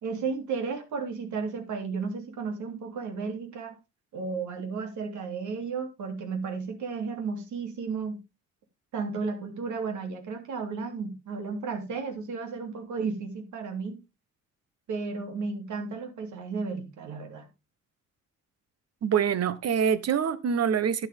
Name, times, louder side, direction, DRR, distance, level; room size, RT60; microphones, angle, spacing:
voice 1, 0.0-3.8 4.1-8.2 8.9-14.0 14.9-17.5, right 4 dB, 70° right, 3.2 m, -33 dB
voice 2, 19.0-21.1, right 7 dB, 55° right, 1.3 m, -25 dB
12.0 x 8.5 x 3.6 m
cardioid pair, 90°, 30 cm